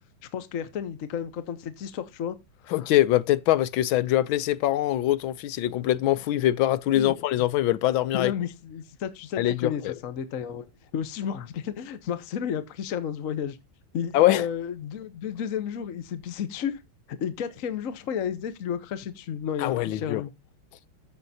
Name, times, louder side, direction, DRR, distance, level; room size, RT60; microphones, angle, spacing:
voice 1, 0.3-2.4 2.6-2.7 6.9-7.1 8.1-10.7 10.9-13.6 13.9-16.8 17.2-20.3, left 8 dB, 55° left, 1.1 m, -32 dB
voice 2, 2.7-8.3 9.4-9.9 14.1-14.4 19.6-20.2, left 14 dB, 90° left, 1.5 m, -23 dB
14.0 x 6.6 x 2.7 m
omnidirectional pair, 2.1 m